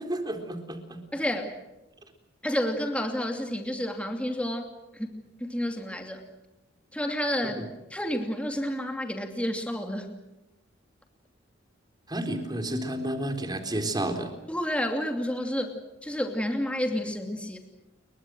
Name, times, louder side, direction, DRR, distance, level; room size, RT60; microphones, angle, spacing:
voice 1, 0.0-1.0 7.6-7.7 12.1-14.3, right 1 dB, 20° right, 5 dB, 3.9 m, -31 dB
voice 2, 1.1-1.5 2.4-5.2 5.5-6.2 6.9-7.6 7.9-10.1 14.5-17.6, equal, 5° left, 4 dB, 2.7 m, -30 dB
29.5 x 23.5 x 6.3 m, 0.97 s
head